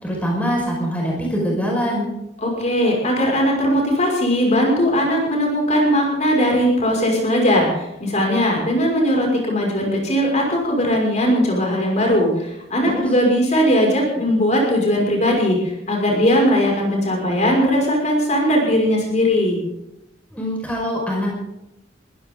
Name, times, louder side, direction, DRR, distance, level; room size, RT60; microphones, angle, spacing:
voice 1, 0.0-2.1 12.8-13.0 20.3-21.4, equal, 10° left, -3 dB, 5.4 m, -23 dB
voice 2, 2.4-19.6, equal, 40° left, -1 dB, 6.0 m, -19 dB
22.0 x 16.0 x 3.9 m, 0.88 s
head